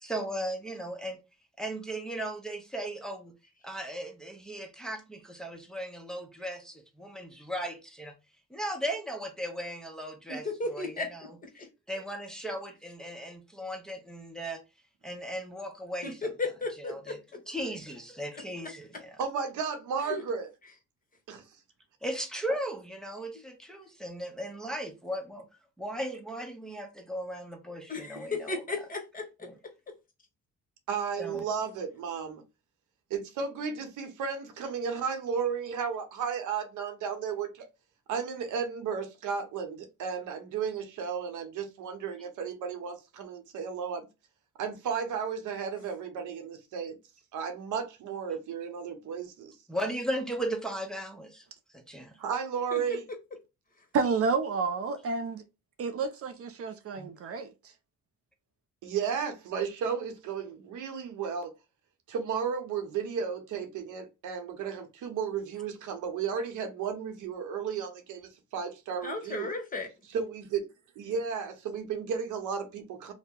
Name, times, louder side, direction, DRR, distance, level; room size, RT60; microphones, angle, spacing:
voice 1, 0.0-1.2 1.6-3.3 3.6-8.1 8.5-11.3 11.9-14.6 15.0-16.3 16.8-17.2 17.5-19.2 22.0-25.5 25.8-28.6 29.4-29.5 31.2-31.4 49.7-51.4 51.7-52.2 57.0-57.1, right 1 dB, ahead, 0.7 m, -37 dB
voice 2, 10.3-11.1 11.5-11.7 16.0-17.2 20.1-20.2 27.9-29.3 52.7-53.0 69.0-69.9, left 3 dB, 30° left, 1.1 m, -34 dB
voice 3, 19.2-20.5 21.3-21.4 30.9-32.4 33.1-37.6 38.1-44.1 44.6-47.0 47.3-49.6 52.2-53.0 58.8-61.5 62.1-69.5 70.1-70.7 71.0-73.1, right 6 dB, 80° right, 0.8 m, -34 dB
voice 4, 53.9-55.4 55.8-57.5, right 4 dB, 50° right, 0.5 m, -30 dB
2.7 x 2.1 x 3.6 m
cardioid pair, 90°, 30 cm